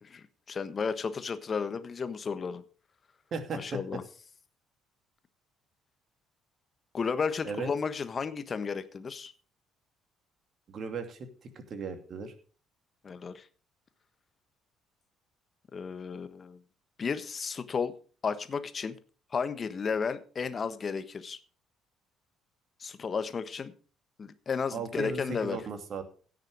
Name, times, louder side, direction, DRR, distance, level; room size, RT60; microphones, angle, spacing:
voice 1, 0.0-2.6 3.5-4.0 6.9-9.3 13.0-13.5 15.7-16.6 17.0-17.9 18.2-19.0 19.3-21.4 22.8-23.7 24.2-25.6, left 5 dB, 40° left, 12 dB, 1.3 m, -33 dB
voice 2, 3.3-3.8 7.4-7.7 10.7-12.3 24.7-26.0, right 4 dB, 50° right, 7 dB, 2.5 m, -36 dB
16.5 x 6.6 x 4.8 m, 0.41 s
hypercardioid pair, 50°, 0 cm